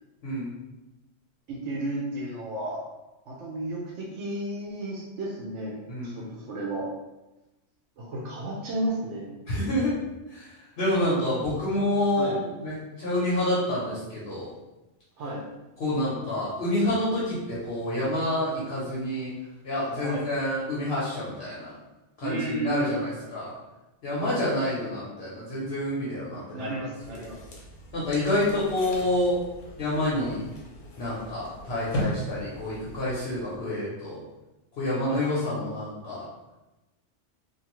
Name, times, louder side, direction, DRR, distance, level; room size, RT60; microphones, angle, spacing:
voice 1, 1.5-2.8 3.3-6.9 8.0-9.3 12.1-12.4 15.2-15.4 20.0-20.2 22.2-23.0 24.2-24.4 26.5-27.4 35.0-35.2, right 1 dB, 80° right, -4 dB, 0.9 m, -33 dB
voice 2, 5.9-6.2 9.5-9.9 10.3-10.4 10.8-12.4 12.6-14.5 15.8-19.3 19.6-21.7 22.2-23.5 24.0-26.7 27.9-29.4 29.8-30.4 31.0-34.2 34.8-36.3, left 1 dB, 60° left, -8 dB, 1.0 m, -28 dB
sound 1, 27.0-33.6, equal, 85° left, 1.0 m, -38 dB
2.6 x 2.4 x 3.0 m, 1.0 s
omnidirectional pair, 1.2 m